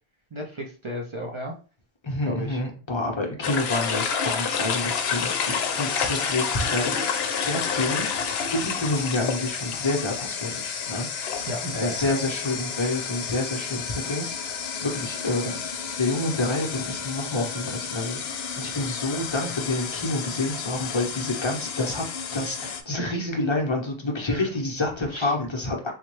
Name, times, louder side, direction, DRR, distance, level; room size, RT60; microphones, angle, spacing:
voice 1, 0.3-1.5 2.3-2.6 6.5-6.6 11.4-12.1 15.4-15.5 24.3-24.5 25.1-25.3, equal, 40° right, 0 dB, 0.4 m, -34 dB
voice 2, 2.0-8.1 8.5-11.1 11.6-15.6 16.0-22.0 22.3-25.9, left 2 dB, 30° left, 0 dB, 0.7 m, -28 dB
sound 1, 3.4-22.8, left 6 dB, 75° left, 0.8 m, -30 dB
3.9 x 2.2 x 3.1 m, 0.37 s
omnidirectional pair, 1.1 m